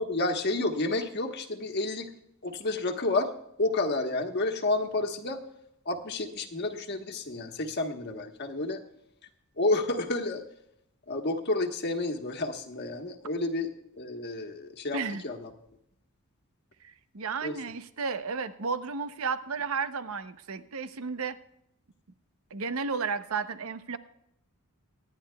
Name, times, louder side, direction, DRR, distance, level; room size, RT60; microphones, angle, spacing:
voice 1, 0.0-2.1 2.4-3.3 3.6-5.4 5.8-8.8 9.6-10.4 11.1-15.5 17.4-17.6, left 2 dB, 50° left, 4 dB, 1.3 m, -30 dB
voice 2, 14.9-15.2 16.8-21.4 22.5-24.0, right 5 dB, 70° right, 11 dB, 0.7 m, -33 dB
25.0 x 10.5 x 2.3 m, 0.78 s
head